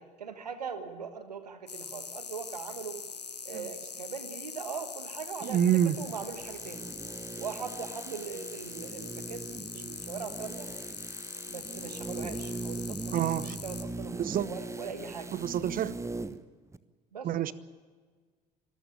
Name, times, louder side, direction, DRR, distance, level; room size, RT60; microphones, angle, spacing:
voice 1, 0.0-3.0 3.4-5.6 6.0-6.9 7.4-10.7 11.5-13.3 13.6-14.1 14.5-15.3 17.1-17.5, right 6 dB, 85° right, 10 dB, 1.5 m, -40 dB
sound 1, 1.7-13.8, left 5 dB, 90° left, 0.9 m, -42 dB
voice 2, 5.4-6.0 13.1-13.6 14.2-14.5 15.3-15.9 17.2-17.5, right 10 dB, 45° right, 18 dB, 1.0 m, -27 dB
sound 2, 5.8-16.4 16.7-16.8, right 3 dB, 15° right, 1.1 m, -41 dB
25.0 x 14.0 x 8.6 m, 1.5 s
figure-of-eight pair, 55°, 20 cm